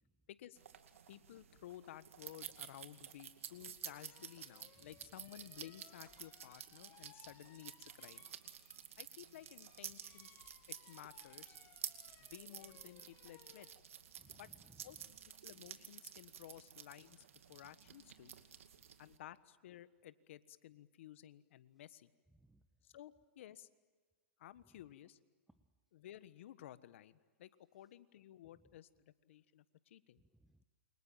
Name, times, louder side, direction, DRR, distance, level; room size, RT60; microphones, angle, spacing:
voice 1, 0.3-0.6 1.1-8.2 9.0-10.4 10.7-11.6 12.2-13.7 14.3-14.5 14.8-15.0 15.2-17.2 17.5-18.3 19.0-22.1 22.8-23.7 24.4-25.2 25.9-30.2, left 12 dB, 65° left, 14 dB, 1.4 m, -55 dB
sound 1, 0.6-19.2, right 8 dB, 80° right, 2.4 m, -52 dB
sound 2, 3.8-9.0 9.2-15.4, left 11 dB, 35° left, 2.0 m, -67 dB
voice 2, 14.2-15.1 22.3-22.6 25.5-25.6 28.5-28.6 30.2-30.6, right 1 dB, 5° right, 9 dB, 1.0 m, -67 dB
29.0 x 25.0 x 7.4 m, 1.5 s
hypercardioid pair, 125°, 7 cm